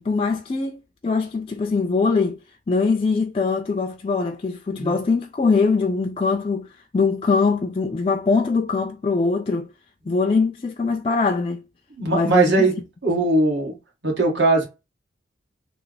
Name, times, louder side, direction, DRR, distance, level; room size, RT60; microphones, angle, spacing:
voice 1, 0.0-2.4 2.7-9.7 10.1-11.6 12.1-12.7, left 4 dB, 30° left, 0.3 m, -22 dB
voice 2, 12.0-12.8 13.0-13.8 14.0-14.7, right 2 dB, 60° right, 1.4 m, -19 dB
3.3 x 2.1 x 3.8 m
head